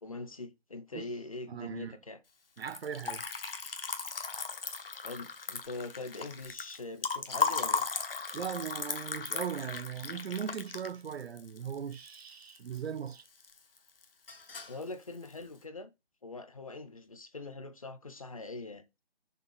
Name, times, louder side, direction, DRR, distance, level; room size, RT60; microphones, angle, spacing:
voice 1, 0.0-2.2 5.0-7.9 14.7-15.9 16.2-18.8, left 3 dB, 35° left, 0.7 m, -43 dB
voice 2, 1.5-2.0 2.6-3.2 8.3-13.2, right 7 dB, 90° right, 0.6 m, -38 dB
Liquid, 2.6-12.8 13.1-13.8 14.0-14.8, left 5 dB, 65° left, 1.3 m, -36 dB
6.6 x 3.4 x 5.4 m
figure-of-eight pair, 170°, 31 cm